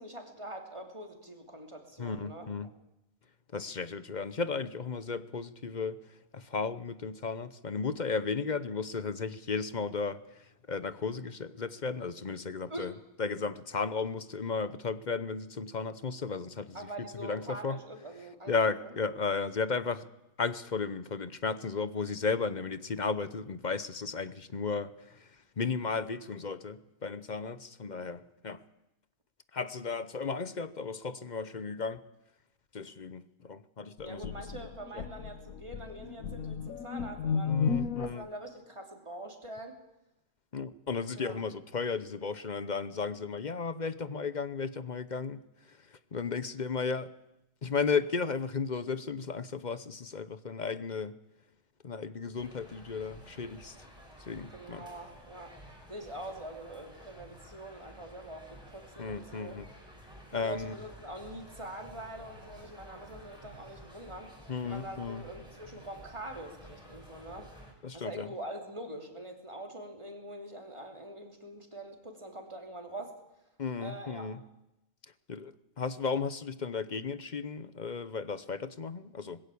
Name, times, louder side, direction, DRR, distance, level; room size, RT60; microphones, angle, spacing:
voice 1, 0.0-2.7 12.7-13.0 16.7-18.5 18.8-18.9 34.0-37.6 38.0-39.8 41.2-41.4 54.5-55.6 55.9-59.6 60.3-64.3 64.6-67.5 67.9-73.1 73.8-74.3, right 1 dB, 20° right, 4 dB, 3.0 m, -44 dB
voice 2, 2.0-2.7 3.5-12.9 13.2-17.8 18.5-20.1 20.4-28.6 29.5-32.0 32.7-34.3 34.9-35.0 37.5-38.3 40.5-47.1 47.6-51.2 51.8-53.9 54.3-54.9 59.0-59.7 60.3-60.7 64.5-65.2 67.8-68.3 73.6-74.4 75.3-79.4, left 5 dB, 40° left, 15 dB, 0.9 m, -34 dB
sound 1, 34.0-38.2, left 6 dB, 85° left, 1.4 m, -33 dB
sound 2, 52.3-67.7, equal, 5° right, 5.3 m, -52 dB
20.5 x 16.5 x 8.5 m, 0.90 s
omnidirectional pair, 1.4 m